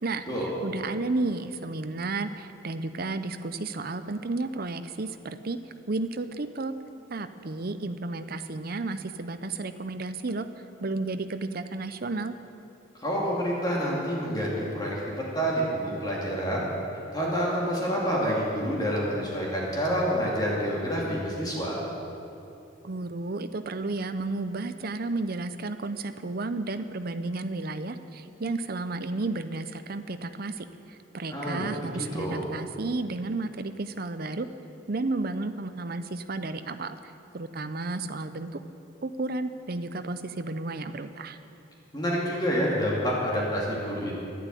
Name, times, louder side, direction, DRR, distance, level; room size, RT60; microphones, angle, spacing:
voice 1, 0.6-5.6 5.9-6.7 7.1-10.5 10.8-12.3 22.8-34.5 34.9-37.0 37.3-38.6 39.0-41.4, right 3 dB, 50° right, 10 dB, 0.6 m, -32 dB
voice 2, 13.0-16.7 17.1-21.8 31.3-32.4 41.9-44.2, equal, 20° left, -5 dB, 2.5 m, -28 dB
11.5 x 11.5 x 9.1 m, 2.7 s
head